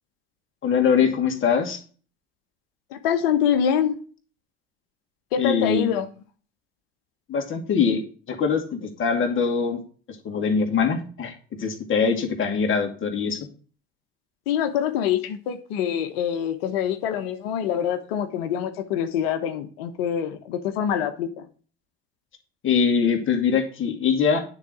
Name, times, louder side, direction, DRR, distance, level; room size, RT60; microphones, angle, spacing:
voice 1, 0.6-1.8 5.4-5.9 7.3-8.0 8.3-9.8 10.2-11.3 11.6-13.4 22.6-24.4, left 6 dB, 45° left, 1 dB, 2.5 m, -22 dB
voice 2, 2.9-3.9 5.3-6.1 14.5-21.5, left 9 dB, 85° left, 8 dB, 1.1 m, -25 dB
9.5 x 4.1 x 6.1 m, 0.41 s
hypercardioid pair, 75°, 29 cm